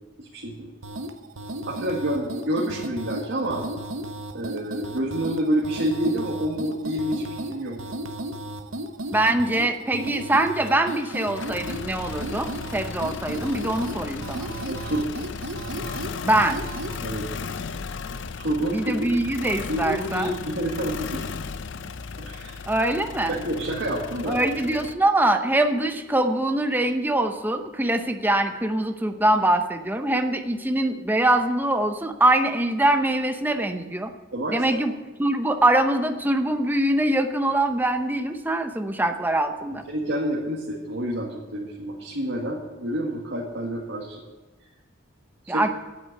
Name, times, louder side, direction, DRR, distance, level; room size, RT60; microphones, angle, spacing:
voice 1, 0.2-0.7 1.7-3.7 4.3-7.8 9.9-10.0 14.7-15.1 17.0-17.2 18.4-19.2 19.7-21.2 22.2-22.6 23.3-24.4 34.3-34.8 39.9-44.2 45.4-45.7, right 1 dB, 60° right, -4 dB, 1.9 m, -28 dB
sound 1, 0.8-17.0, right 1 dB, 80° right, 0.9 m, -35 dB
voice 2, 9.1-14.5 16.2-16.6 18.7-20.3 22.7-23.3 24.3-34.1 34.5-34.9 35.2-39.8 45.5-45.7, right 1 dB, 10° right, 6 dB, 0.7 m, -23 dB
sound 2, 10.7-24.9, left 5 dB, 65° left, 0.5 m, -36 dB
9.3 x 8.5 x 7.6 m, 1.2 s
head